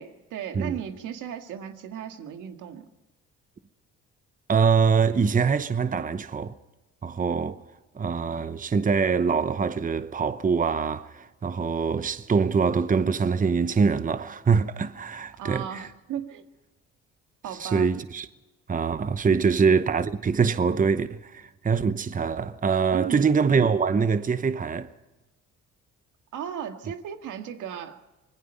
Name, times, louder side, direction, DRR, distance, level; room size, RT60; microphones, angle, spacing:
voice 1, 0.0-2.9 15.4-16.4 17.4-17.9 19.4-19.7 22.9-23.4 26.3-28.0, right 9 dB, 85° right, 1.8 m, -36 dB
voice 2, 4.5-6.5 7.0-7.6 7.9-15.9 17.6-18.3 18.7-24.9, right 5 dB, 25° right, 0.9 m, -24 dB
25.0 x 20.5 x 5.6 m
cardioid pair, 90°, 30 cm